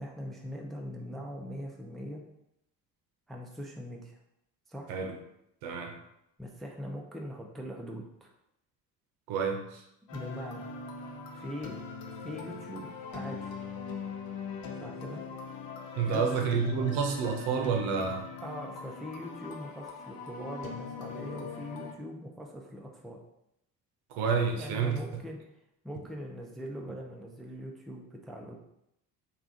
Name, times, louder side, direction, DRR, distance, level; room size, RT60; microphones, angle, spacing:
voice 1, 0.0-2.2 3.3-4.2 4.7-4.9 6.4-8.3 10.1-10.7 11.4-11.7 12.2-13.5 14.8-15.2 16.1-16.5 18.4-23.2 24.6-25.4 25.8-28.6, equal, ahead, 0 dB, 0.5 m, -41 dB
voice 2, 5.6-5.9 9.3-9.8 16.0-18.3 24.1-25.0, right 5 dB, 65° right, 3 dB, 0.8 m, -29 dB
sound 1, 10.1-21.9, left 5 dB, 45° left, 0.7 m, -41 dB
3.4 x 2.5 x 3.9 m, 0.81 s
hypercardioid pair, 50°, 49 cm